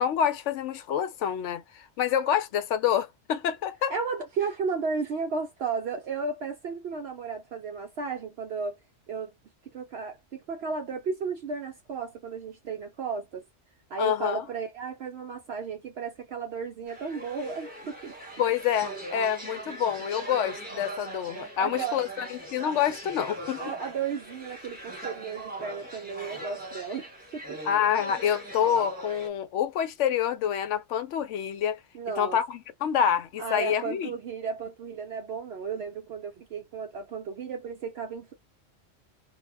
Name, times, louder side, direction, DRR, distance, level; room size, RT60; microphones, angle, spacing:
voice 1, 0.0-3.9 14.0-14.4 18.4-23.6 27.6-31.8 32.2-34.1, left 9 dB, 75° left, 0.9 m, -27 dB
voice 2, 3.9-8.8 9.1-9.3 9.7-13.4 13.9-18.1 21.6-22.0 23.6-27.6 31.9-32.4 33.4-38.3, right 5 dB, 65° right, 0.8 m, -34 dB
sound 1, 16.9-29.3, right 1 dB, 10° right, 0.9 m, -40 dB
2.3 x 2.2 x 3.3 m
omnidirectional pair, 1.3 m